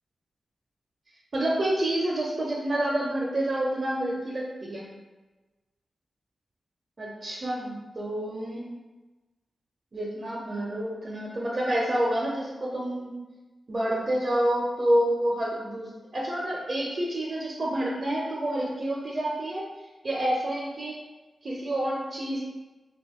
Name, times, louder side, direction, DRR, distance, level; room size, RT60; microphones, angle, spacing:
voice 1, 1.3-4.9 7.0-8.7 9.9-13.1 13.7-19.6 20.0-21.0 21.4-22.4, right 1 dB, 50° right, -4 dB, 0.5 m, -28 dB
2.5 x 2.2 x 3.5 m, 1.2 s
cardioid pair, 70°, 0 cm